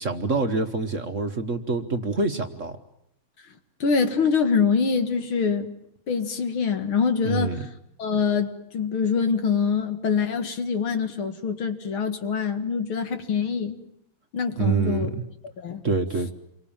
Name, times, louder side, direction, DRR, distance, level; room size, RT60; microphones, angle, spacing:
voice 1, 0.0-2.8 7.2-7.7 14.6-15.1 15.8-16.3, right 3 dB, 40° right, 6 dB, 1.4 m, -26 dB
voice 2, 3.8-5.7 6.1-7.6 8.0-13.8 14.3-15.1 15.6-15.8, left 5 dB, 75° left, 7 dB, 2.8 m, -24 dB
28.0 x 24.0 x 7.3 m, 0.79 s
omnidirectional pair, 2.3 m